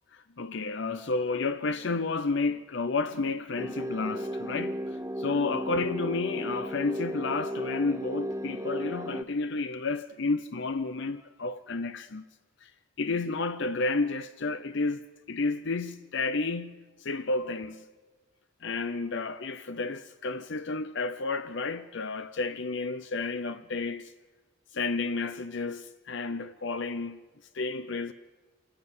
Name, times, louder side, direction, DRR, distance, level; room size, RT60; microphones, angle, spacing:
voice 1, 0.4-4.8 5.2-12.2 12.6-12.7 13.0-15.0 15.3-17.8 18.6-24.1 24.7-27.2 27.5-28.1, left 3 dB, 55° left, 0.7 m, -31 dB
sound 1, 3.6-9.2, equal, 15° right, 0.8 m, -35 dB
27.0 x 15.0 x 9.5 m
head